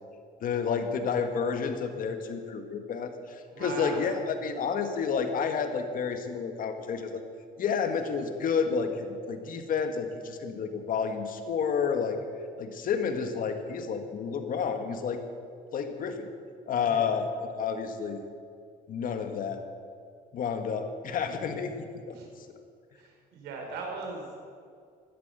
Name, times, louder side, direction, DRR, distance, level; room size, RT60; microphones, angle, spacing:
voice 1, 0.4-7.2 7.6-12.2 12.6-15.2 15.7-16.3 16.7-18.2 18.9-19.6 20.3-22.2, left 6 dB, 55° left, 7 dB, 1.8 m, -30 dB
voice 2, 3.5-4.0 16.8-17.2 22.2-22.3 23.0-24.4, right 3 dB, 85° right, 1 dB, 4.5 m, -39 dB
16.5 x 11.5 x 7.0 m, 2.2 s
cardioid pair, 110°, 17 cm